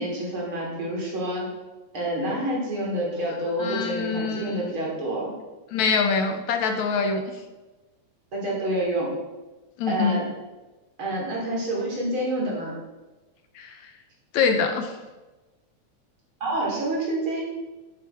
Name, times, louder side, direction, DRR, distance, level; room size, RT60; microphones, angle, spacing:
voice 1, 0.0-1.5 1.9-5.3 8.3-9.1 9.9-10.3 11.0-12.7 16.4-17.5, right 1 dB, 45° right, -3 dB, 3.4 m, -28 dB
voice 2, 3.6-4.7 5.7-7.2 9.8-10.2 13.6-13.9 14.3-14.9, left 5 dB, 75° left, 6 dB, 2.2 m, -24 dB
11.5 x 8.9 x 4.4 m, 1.1 s
omnidirectional pair, 3.4 m